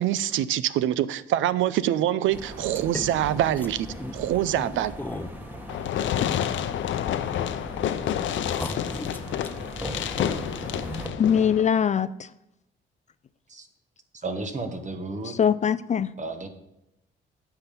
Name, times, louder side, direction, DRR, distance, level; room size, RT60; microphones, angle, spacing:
voice 1, 0.0-3.9 4.1-4.9, right 12 dB, 80° right, 0.5 m, -25 dB
sound 1, 2.3-11.1, equal, 10° right, 1.9 m, -38 dB
sound 2, 2.7-6.5 6.9-7.7 8.0-8.1 8.4-9.6, left 1 dB, 10° left, 0.8 m, -38 dB
Fireworks, 5.7-11.7, left 10 dB, 70° left, 0.7 m, -29 dB
voice 2, 11.2-12.3 15.2-16.1, left 8 dB, 35° left, 0.4 m, -22 dB
voice 3, 14.2-15.3 16.2-16.5, right 3 dB, 35° right, 1.4 m, -33 dB
10.0 x 5.8 x 6.9 m
cardioid pair, 90°, 20 cm